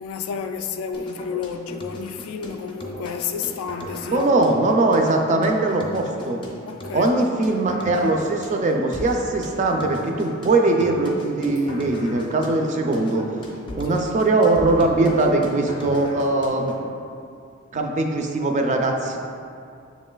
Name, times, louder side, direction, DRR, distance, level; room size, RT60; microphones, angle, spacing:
voice 1, 0.0-4.3 6.7-7.6, left 6 dB, 90° left, 7 dB, 0.3 m, -31 dB
sound 1, 0.9-16.9, left 1 dB, 25° left, 0.5 m, -38 dB
voice 2, 4.0-6.4 6.9-13.3 13.7-16.8 17.7-19.2, right 2 dB, 35° right, 2 dB, 0.4 m, -21 dB
7.0 x 3.1 x 2.2 m, 2.5 s
head